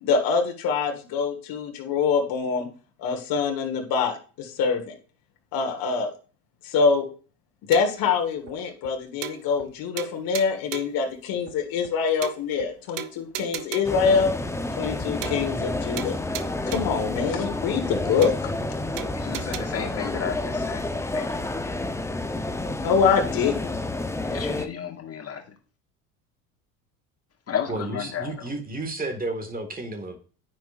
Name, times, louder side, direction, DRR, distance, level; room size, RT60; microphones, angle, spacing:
voice 1, 0.0-2.7 3.0-5.0 5.5-6.1 6.6-7.1 7.7-14.3 14.8-16.2 16.7-18.5 22.8-23.8, left 5 dB, 55° left, 4 dB, 1.7 m, -25 dB
sound 1, 7.7-8.1 8.5-8.6 8.8-8.9 9.2-9.7 10.0-11.0 11.5-11.6 11.8-11.9 12.2-12.7 13.0-14.0 14.5-14.6 14.8-15.0 15.2-15.7 16.0-17.0 17.5-17.6 17.8-17.9 18.2-18.7 19.0-19.6, right 12 dB, 50° right, 0.7 m, -36 dB
sound 2, 13.8-24.7, left 2 dB, 5° left, 0.8 m, -29 dB
voice 2, 19.1-20.8 21.1-21.4 24.2-25.4 27.5-28.5, left 8 dB, 35° left, 3 dB, 1.7 m, -33 dB
voice 3, 27.7-30.2, right 2 dB, 20° right, 6 dB, 2.0 m, -32 dB
9.4 x 6.2 x 2.6 m, 0.39 s
hypercardioid pair, 65°, 43 cm